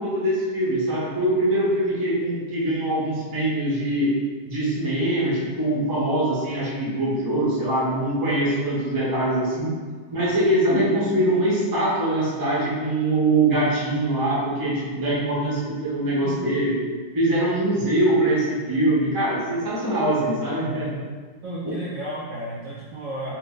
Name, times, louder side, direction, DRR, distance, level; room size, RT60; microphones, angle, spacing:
voice 1, 0.0-4.1 4.4-9.8 10.1-16.8 17.1-21.0, right 1 dB, 35° right, -7 dB, 0.3 m, -23 dB
voice 2, 21.4-23.3, right 1 dB, 70° right, -7 dB, 0.7 m, -33 dB
2.8 x 2.6 x 3.6 m, 1.5 s
omnidirectional pair, 1.9 m